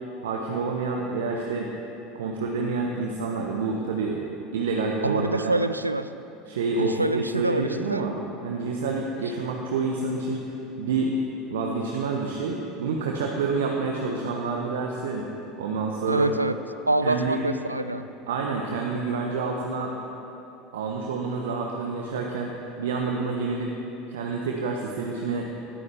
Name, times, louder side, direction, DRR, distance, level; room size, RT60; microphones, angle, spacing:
voice 1, 0.2-1.7 2.1-4.2 4.5-5.5 6.5-8.2 8.4-10.5 10.8-11.1 11.5-15.2 15.6-16.3 17.0-17.4 18.3-19.9 20.7-22.5 22.8-23.7 24.1-25.5, right 4 dB, 65° right, 0 dB, 1.1 m, -28 dB
voice 2, 5.0-6.1 6.8-8.1 16.1-16.6 16.9-18.1, right 2 dB, 85° right, 12 dB, 0.4 m, -26 dB
19.0 x 13.5 x 3.5 m, 2.9 s
figure-of-eight pair, 70°, 0 cm